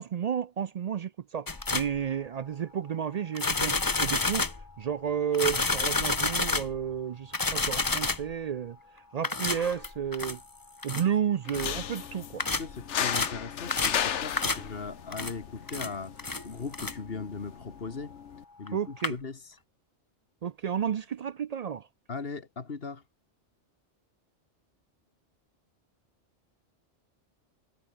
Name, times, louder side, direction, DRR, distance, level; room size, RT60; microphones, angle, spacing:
voice 1, 0.0-4.4 4.8-8.8 9.1-10.4 10.8-12.5 18.7-19.1 20.4-21.9, right 8 dB, 65° right, 0.4 m, -31 dB
sound 1, 1.5-2.0 3.3-4.7 5.3-6.8 7.3-8.3 9.2-10.4 10.8-11.0 11.5-11.7 12.4-12.7 13.1-13.4 13.7-14.1 14.4-14.7 15.1-15.3 15.7-16.4 16.7-16.9 18.7-18.8 19.0-19.1, left 3 dB, 20° left, 0.8 m, -29 dB
sound 2, 11.5-18.4, left 9 dB, 80° left, 1.3 m, -35 dB
voice 2, 12.6-18.1 18.6-19.6 22.1-23.0, left 4 dB, 55° left, 1.9 m, -39 dB
omnidirectional pair, 1.2 m